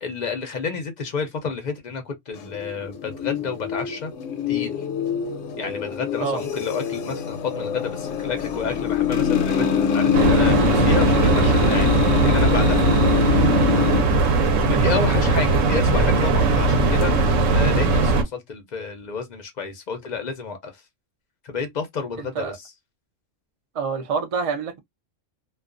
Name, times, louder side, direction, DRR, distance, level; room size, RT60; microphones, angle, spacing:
voice 1, 0.0-4.1 4.5-4.8 5.6-12.8 14.3-20.8 21.4-22.5, left 5 dB, 50° left, 0.5 m, -30 dB
sound 1, 2.4-14.0, left 7 dB, 80° left, 0.9 m, -24 dB
sound 2, 10.1-18.2, right 3 dB, 90° right, 1.0 m, -19 dB
voice 2, 14.4-14.9 22.2-22.6 23.7-24.8, right 5 dB, 65° right, 0.3 m, -28 dB
2.3 x 2.2 x 2.4 m
omnidirectional pair, 1.3 m